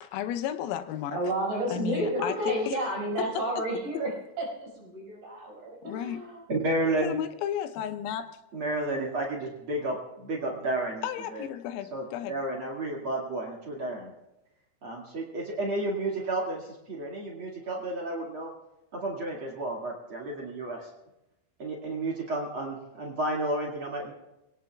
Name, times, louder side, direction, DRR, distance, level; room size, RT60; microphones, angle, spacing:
voice 1, 0.0-1.2 1.7-2.8 3.4-3.5 5.8-6.2 7.0-8.4 11.0-12.4, left 10 dB, 85° left, 8 dB, 3.5 m, -33 dB
voice 2, 1.1-4.1 4.4-6.4, right 1 dB, 45° right, -3 dB, 6.7 m, -31 dB
voice 3, 6.5-7.1 8.5-11.0 11.3-11.4 11.9-14.1 14.8-18.5 18.9-20.9 21.6-24.1, right 2 dB, 80° right, -2 dB, 1.1 m, -31 dB
26.5 x 18.0 x 2.3 m, 0.91 s
omnidirectional pair, 6.0 m